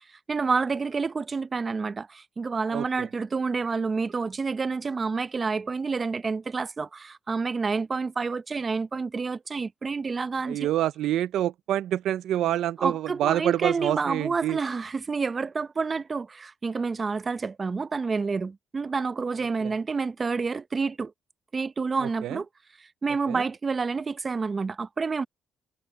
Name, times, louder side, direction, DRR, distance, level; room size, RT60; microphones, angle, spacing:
voice 1, 0.0-10.7 12.8-21.1 21.5-22.5 22.8-25.2, right 4 dB, 35° right, 0.6 m, -29 dB
voice 2, 2.7-3.1 10.5-14.6 19.6-19.7 22.0-22.4 23.3-23.4, right 12 dB, 80° right, 0.5 m, -27 dB
cardioid pair, 90°, 0 cm